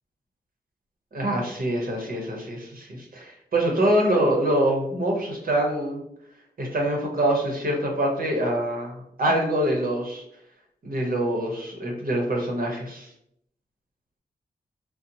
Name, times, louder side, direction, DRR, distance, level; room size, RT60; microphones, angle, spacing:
voice 1, 1.1-6.0 6.6-8.9 9.2-10.2 10.8-13.1, right 1 dB, 55° right, 0 dB, 0.8 m, -25 dB
2.7 x 2.0 x 2.7 m, 0.74 s
cardioid pair, 60°, 17 cm